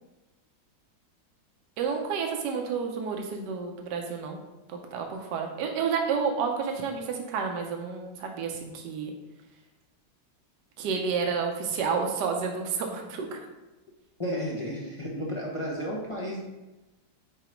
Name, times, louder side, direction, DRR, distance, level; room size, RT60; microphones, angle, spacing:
voice 1, 1.8-4.4 4.7-9.1 10.8-13.4, right 5 dB, 70° right, 3 dB, 1.4 m, -30 dB
voice 2, 14.2-16.4, equal, 30° left, -4 dB, 0.6 m, -32 dB
4.9 x 4.5 x 4.5 m, 1.1 s
omnidirectional pair, 2.0 m